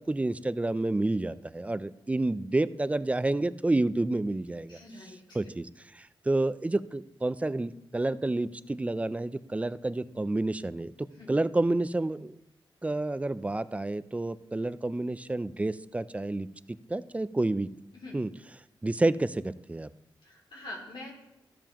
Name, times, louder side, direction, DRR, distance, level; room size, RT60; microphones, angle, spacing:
voice 1, 0.0-4.8 5.3-5.7 5.9-10.9 11.3-12.3 12.8-16.5 16.9-17.7 18.1-18.3 18.8-19.9, right 2 dB, 15° right, 15 dB, 0.4 m, -29 dB
voice 2, 4.7-5.5 11.1-11.3 17.9-18.2 20.2-21.1, left 1 dB, 60° left, -4 dB, 2.7 m, -44 dB
13.5 x 6.9 x 3.0 m, 0.88 s
wide cardioid pair, 95°, 9 cm